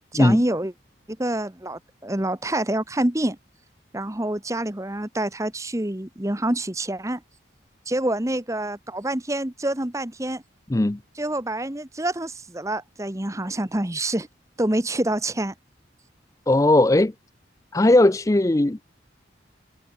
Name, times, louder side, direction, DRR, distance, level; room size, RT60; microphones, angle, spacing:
voice 1, 0.1-0.7 1.1-3.4 3.9-7.2 7.9-10.4 11.2-14.3 14.6-15.5, right 1 dB, 15° right, 1.1 m, -27 dB
voice 2, 16.5-17.1 17.7-18.8, left 1 dB, 15° left, 0.4 m, -18 dB
head